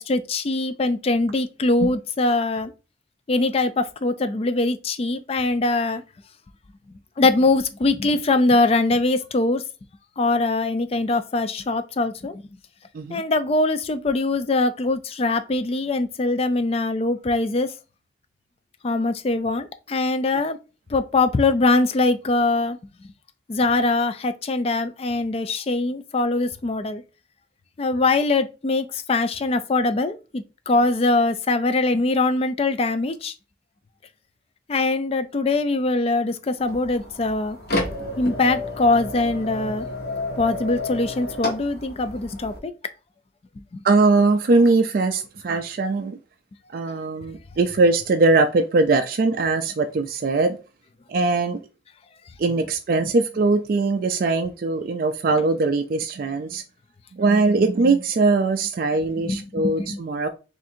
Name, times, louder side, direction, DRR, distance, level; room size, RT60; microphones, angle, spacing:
voice 1, 0.0-2.7 3.3-6.0 7.2-9.6 10.2-12.4 13.1-17.7 18.8-20.6 20.9-22.8 23.5-27.0 27.8-33.3 34.7-37.6 38.2-39.9 40.4-42.7 43.7-43.8 59.2-60.0, left 2 dB, 30° left, 0.3 m, -22 dB
sound 1, 36.6-42.6, left 1 dB, 55° left, 0.9 m, -31 dB
voice 2, 43.8-46.2 46.7-50.6 51.1-51.6 52.4-56.6 57.2-60.3, right 3 dB, 50° right, 0.3 m, -21 dB
3.6 x 2.5 x 4.3 m
head